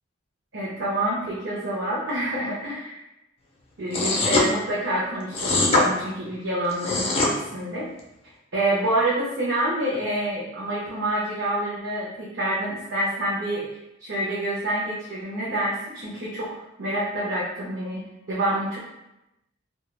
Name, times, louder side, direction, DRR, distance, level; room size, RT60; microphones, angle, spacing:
voice 1, 0.5-3.0 3.8-7.9 8.5-13.7 14.0-18.0 18.3-18.8, right 1 dB, 65° right, -7 dB, 0.6 m, -27 dB
Caroon lick, 3.9-4.5 5.3-5.9 6.7-7.3, left 3 dB, 30° left, 0.4 m, -21 dB
2.2 x 2.2 x 3.1 m, 0.93 s
head